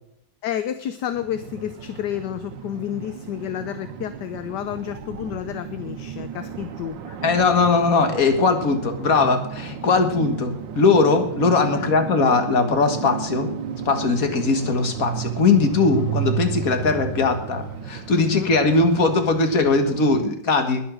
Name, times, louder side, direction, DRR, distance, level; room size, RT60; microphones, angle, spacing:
voice 1, 0.4-7.0 11.7-11.9 18.1-18.5, left 10 dB, 70° left, 11 dB, 1.3 m, -30 dB
sound 1, 1.1-20.3, right 8 dB, 80° right, 1.6 m, -33 dB
voice 2, 7.2-13.5 13.9-20.8, left 4 dB, 50° left, 6 dB, 2.1 m, -20 dB
20.5 x 7.2 x 6.4 m, 0.75 s
omnidirectional pair, 2.0 m